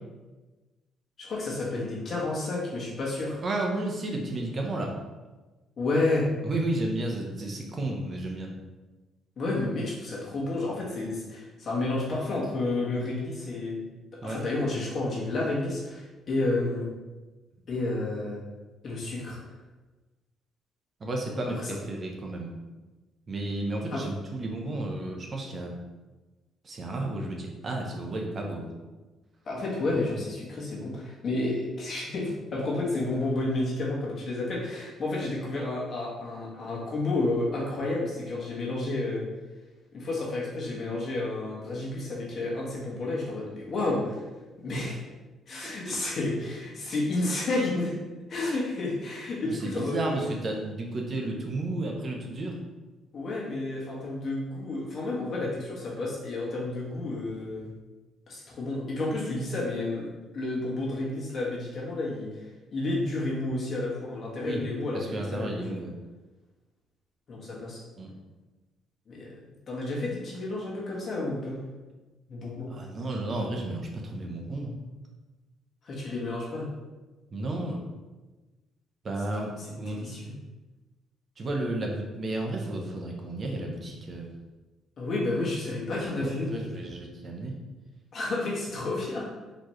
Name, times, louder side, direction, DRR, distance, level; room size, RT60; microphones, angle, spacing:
voice 1, 1.2-3.4 5.8-6.3 9.4-13.8 14.2-16.8 17.7-18.4 18.8-19.4 21.6-21.7 23.9-24.0 29.4-39.3 39.9-44.2 44.6-45.0 45.5-48.0 48.3-50.2 53.1-57.7 58.3-62.4 62.7-65.7 67.3-67.8 69.1-69.3 69.7-71.6 72.3-72.7 75.8-76.7 79.9-80.3 85.0-86.6 88.1-89.3, left 2 dB, 50° left, -4 dB, 1.3 m, -31 dB
voice 2, 3.4-5.0 6.4-8.5 14.2-14.4 21.0-22.5 23.3-25.7 26.6-28.7 45.6-46.0 49.4-52.6 64.4-64.6 64.9-65.9 68.0-68.1 72.7-74.7 77.3-77.9 79.0-80.1 81.4-84.3 85.9-87.6, right 2 dB, 40° right, 1 dB, 0.7 m, -32 dB
4.1 x 3.1 x 3.1 m, 1.2 s
cardioid pair, 105°, 0 cm